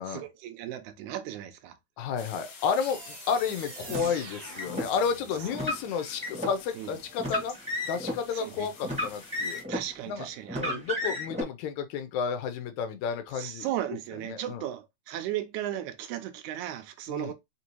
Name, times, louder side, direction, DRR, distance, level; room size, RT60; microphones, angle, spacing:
voice 1, 0.0-1.8 6.8-6.9 8.3-8.7 9.7-10.8 13.4-17.3, right 12 dB, 85° right, 2.1 m, -36 dB
voice 2, 2.0-7.6 7.8-9.6 10.1-10.3 10.6-13.7 14.2-14.6 17.1-17.3, left 6 dB, 80° left, 2.1 m, -31 dB
sound 1, 2.2-9.6, left 5 dB, 65° left, 2.4 m, -49 dB
sound 2, 2.8-5.6, right 5 dB, 60° right, 1.4 m, -45 dB
Car, 3.9-4.9 5.5-6.5 7.2-8.2 8.8-9.9 10.5-11.4, left 1 dB, 5° right, 0.8 m, -32 dB
5.2 x 2.7 x 3.0 m
omnidirectional pair, 3.4 m